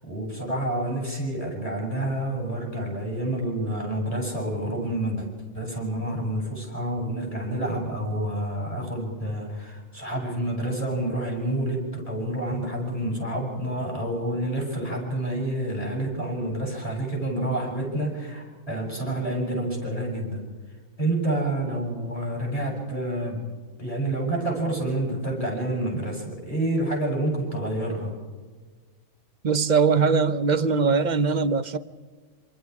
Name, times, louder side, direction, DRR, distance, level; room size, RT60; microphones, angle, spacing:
voice 1, 0.0-5.3 5.5-20.5 21.0-23.5 23.8-28.1, right 1 dB, 25° left, 7.2 m, -28 dB
voice 2, 29.4-31.8, right 5 dB, 40° right, 0.8 m, -21 dB
27.5 x 26.0 x 4.8 m
omnidirectional pair, 1.3 m